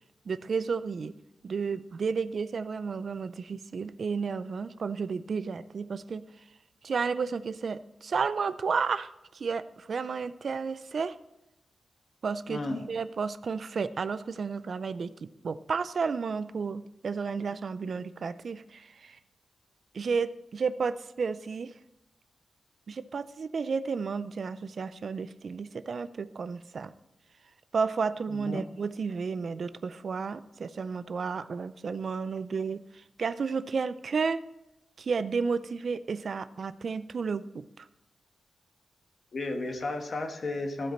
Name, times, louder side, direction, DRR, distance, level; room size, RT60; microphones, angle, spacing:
voice 1, 0.3-1.1 1.4-6.2 6.8-11.2 12.2-19.2 19.9-21.7 22.9-26.9 27.7-34.4 35.0-37.9, right 5 dB, 60° right, 14 dB, 0.4 m, -32 dB
voice 2, 12.5-12.9 28.3-28.6 39.3-40.9, left 2 dB, 55° left, 4 dB, 1.3 m, -33 dB
15.0 x 5.1 x 4.3 m, 0.91 s
wide cardioid pair, 100°, 0 cm